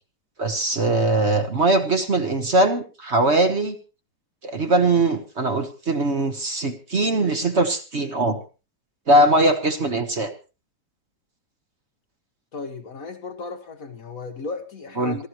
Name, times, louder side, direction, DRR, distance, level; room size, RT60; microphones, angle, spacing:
voice 1, 0.4-3.7 4.4-8.4 9.1-10.3 15.0-15.2, right 2 dB, 40° right, 6 dB, 1.5 m, -21 dB
voice 2, 12.5-15.3, left 4 dB, 55° left, 7 dB, 1.6 m, -35 dB
27.0 x 12.5 x 3.1 m, 0.32 s
omnidirectional pair, 1.8 m